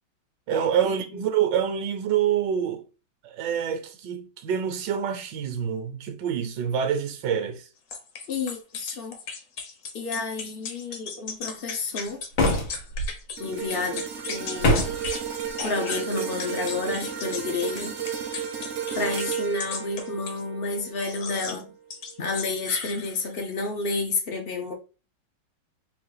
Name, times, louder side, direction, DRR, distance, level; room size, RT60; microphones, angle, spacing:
voice 1, 0.5-2.8 3.2-7.7, right 8 dB, 75° right, 1.3 m, -26 dB
sound 1, 7.9-13.4 13.7-15.2 15.6-20.4 21.0-21.6 21.9-23.4, left 5 dB, 55° left, 1.0 m, -36 dB
voice 2, 8.3-9.2 9.9-12.2 13.4-14.9 15.6-17.9 18.9-21.7 22.2-24.7, left 3 dB, 75° left, 0.5 m, -30 dB
sound 2, 12.3-13.1 14.6-15.1, left 1 dB, 90° left, 1.7 m, -23 dB
sound 3, 13.4-21.7 22.2-22.4, right 8 dB, 60° right, 0.7 m, -33 dB
4.1 x 2.3 x 4.7 m
omnidirectional pair, 2.0 m